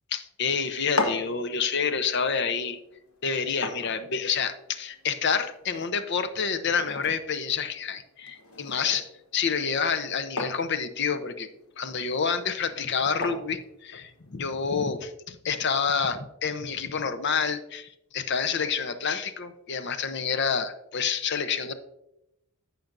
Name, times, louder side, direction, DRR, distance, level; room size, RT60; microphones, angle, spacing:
voice 1, 0.1-2.8 3.2-11.5 11.8-21.7, left 6 dB, 55° left, 10 dB, 0.7 m, -28 dB
sound 1, 0.7-14.6, left 3 dB, 80° left, 1.1 m, -39 dB
14.0 x 6.0 x 2.6 m, 0.85 s
head